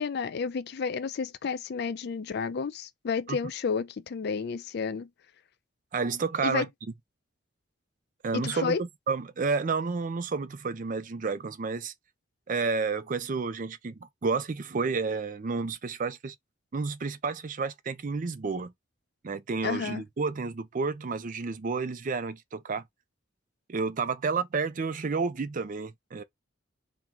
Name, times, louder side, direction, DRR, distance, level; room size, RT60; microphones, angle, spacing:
voice 1, 0.0-5.1 6.4-6.7 8.3-8.8 19.6-20.0, left 5 dB, 55° left, 0.4 m, -31 dB
voice 2, 5.9-6.7 8.2-11.9 12.5-16.3 16.7-18.7 19.2-22.8 23.7-26.2, right 4 dB, 45° right, 0.5 m, -30 dB
3.7 x 2.1 x 4.4 m
head